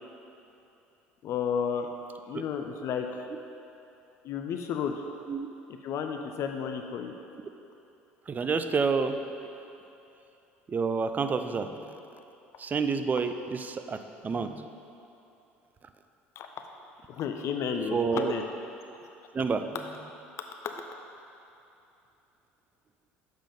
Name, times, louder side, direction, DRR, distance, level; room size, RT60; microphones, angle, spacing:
voice 1, 1.2-1.9 2.3-3.3 4.2-4.9 5.8-7.1 16.4-16.5 17.1-18.4 20.6-20.7, left 7 dB, 50° left, 4 dB, 0.4 m, -32 dB
voice 2, 8.3-9.2 10.7-11.8 12.6-14.7 17.9-18.3 19.3-19.6, right 5 dB, 25° right, 8 dB, 0.4 m, -29 dB
7.2 x 3.8 x 5.3 m, 2.9 s
hypercardioid pair, 65°, 6 cm